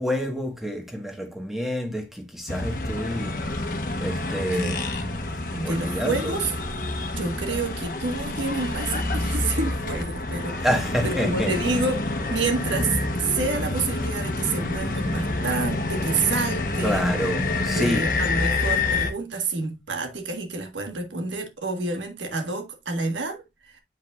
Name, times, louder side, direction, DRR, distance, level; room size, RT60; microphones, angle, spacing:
voice 1, 0.0-3.4 4.0-5.0 5.6-6.3 10.6-11.5 16.8-18.0, equal, ahead, 1.4 m, -28 dB
sound 1, 2.5-19.1, left 2 dB, 50° left, 1.0 m, -28 dB
voice 2, 5.5-6.5 7.2-10.7 11.0-12.0 12.3-17.2 17.7-23.8, right 3 dB, 90° right, 1.5 m, -28 dB
7.9 x 5.2 x 2.4 m
head